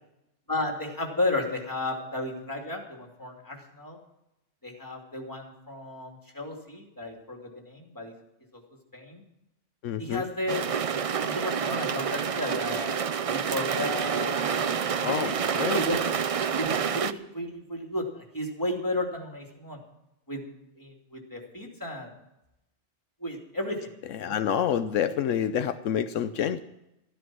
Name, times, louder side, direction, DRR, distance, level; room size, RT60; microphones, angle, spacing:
voice 1, 0.5-4.0 4.6-7.4 7.7-8.1 8.9-9.2 10.0-10.7 11.0-13.0 13.3-15.4 15.7-16.0 16.6-19.8 20.3-20.4 20.8-22.1 23.2-23.8 24.2-24.4, left 1 dB, 15° left, 1 dB, 2.7 m, -33 dB
voice 2, 9.8-10.2 15.0-15.8 24.1-26.6, left 9 dB, 80° left, 11 dB, 1.0 m, -28 dB
sound 1, 10.5-17.1, right 7 dB, 55° right, 0.3 m, -28 dB
13.5 x 12.5 x 6.2 m, 0.88 s
omnidirectional pair, 1.3 m